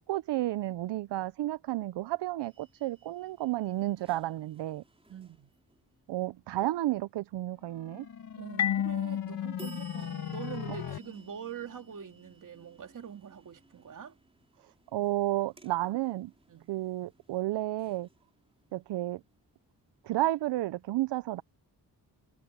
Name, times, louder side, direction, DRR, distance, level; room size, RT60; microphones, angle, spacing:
voice 1, 0.0-4.8 6.1-8.1 14.9-16.3 16.7-18.1 18.7-19.2 20.0-21.4, right 16 dB, 75° right, 0.5 m, -32 dB
sound 1, 2.4-6.1 9.6-20.3, right 3 dB, 15° right, 4.4 m, -59 dB
voice 2, 5.1-5.5 6.6-6.7 8.4-14.1 16.5-16.7, right 8 dB, 45° right, 3.0 m, -44 dB
sound 2, 7.7-11.0, left 10 dB, 60° left, 1.5 m, -40 dB
Marimba xylophone, 8.6-11.2, left 10 dB, 40° left, 0.5 m, -33 dB
wide cardioid pair, 180°, 42 cm